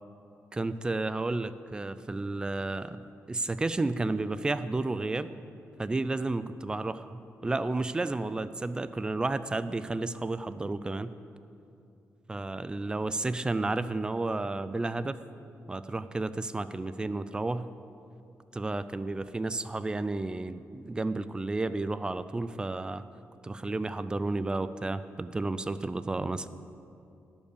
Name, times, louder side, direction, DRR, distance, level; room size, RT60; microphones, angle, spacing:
voice 1, 0.5-3.0 3.3-5.3 5.8-11.1 12.3-15.2 15.7-17.7 18.5-23.0 23.4-26.5, right 2 dB, 15° right, 13 dB, 0.3 m, -32 dB
11.5 x 5.3 x 6.7 m, 2.7 s
cardioid pair, 125°, 5 cm